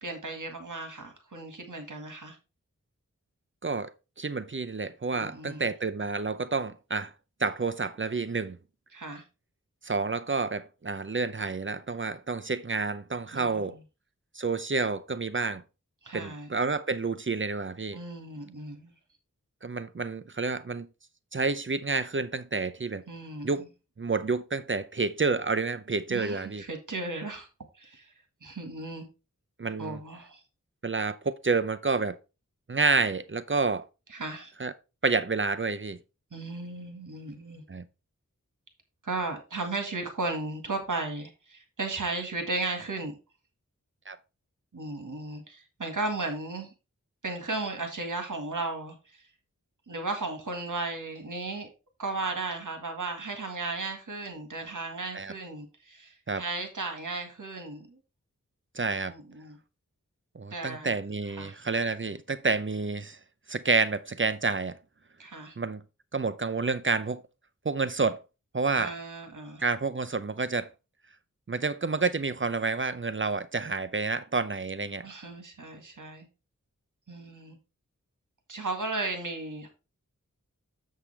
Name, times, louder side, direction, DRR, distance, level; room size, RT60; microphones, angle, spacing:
voice 1, 0.0-2.4 5.1-5.6 8.9-9.2 13.3-13.8 16.0-16.6 17.9-18.9 23.1-23.6 26.1-27.5 27.8-28.1 28.4-29.1 29.8-30.4 34.1-34.5 36.3-37.6 39.0-43.2 44.7-46.7 47.2-49.2 49.9-51.7 52.0-58.0 59.1-59.6 60.5-61.0 61.4-61.6 65.2-65.6 68.8-69.6 75.0-76.3 77.1-77.6 78.5-79.7, right 3 dB, 75° right, 1.8 m, -35 dB
voice 2, 4.2-7.1 7.4-8.6 9.8-13.8 14.3-15.6 16.1-18.0 19.6-20.9 21.3-23.0 23.4-23.6 24.0-26.6 29.6-30.0 30.8-32.2 32.7-33.8 34.6-34.7 35.0-36.0 37.7-37.8 44.1-44.2 55.1-55.3 56.3-56.4 58.7-59.1 60.3-63.2 63.5-64.8 65.6-65.8 66.1-67.2 67.6-68.2 68.5-68.9 69.6-70.7 71.5-75.1, right 4 dB, 40° right, 0.6 m, -29 dB
7.2 x 6.6 x 3.3 m
wide cardioid pair, 50°, 31 cm